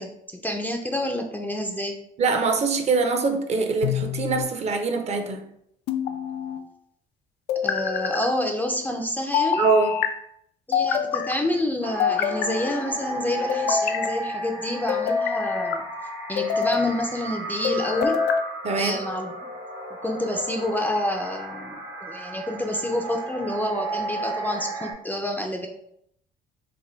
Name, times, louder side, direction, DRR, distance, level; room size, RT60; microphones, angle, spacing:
voice 1, 0.0-2.0 7.6-9.6 10.7-15.9 16.3-18.2 18.8-19.3 20.0-25.7, left 1 dB, 10° left, 2 dB, 0.4 m, -28 dB
voice 2, 2.2-5.4 9.6-9.9 18.6-19.0, right 4 dB, 40° right, 6 dB, 0.5 m, -23 dB
sound 1, 3.8-4.5 5.9-6.6 7.5-8.3 9.3-10.1 10.7-11.4 12.0-12.8 13.5-14.1 14.9-15.8 16.4-16.9 17.6-18.5, left 7 dB, 85° left, 0.4 m, -25 dB
sound 2, 11.8-24.9, right 1 dB, 85° right, 0.8 m, -34 dB
3.3 x 2.2 x 3.8 m, 0.73 s
cardioid pair, 110°, 17 cm